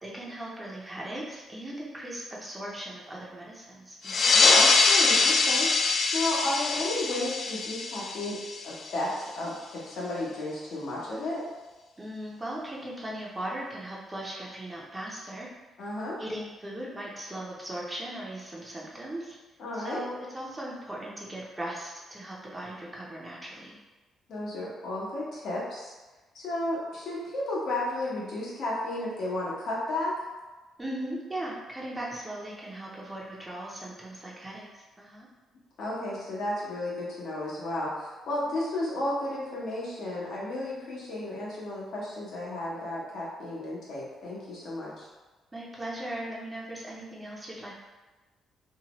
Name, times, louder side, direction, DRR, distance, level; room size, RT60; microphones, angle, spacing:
voice 1, 0.0-4.3 12.0-15.5 16.2-19.4 19.7-23.7 30.8-35.3 45.5-47.8, right 1 dB, 20° right, -4 dB, 0.5 m, -38 dB
sound 1, 4.0-9.1, left 4 dB, 50° left, 0.3 m, -23 dB
voice 2, 4.3-5.7 6.1-8.4 8.6-11.4 15.8-16.2 19.6-20.0 24.3-25.9 26.3-30.1 35.8-45.1, left 1 dB, 70° left, -5 dB, 0.9 m, -33 dB
2.7 x 2.0 x 2.9 m, 1.2 s
cardioid pair, 90°, 0 cm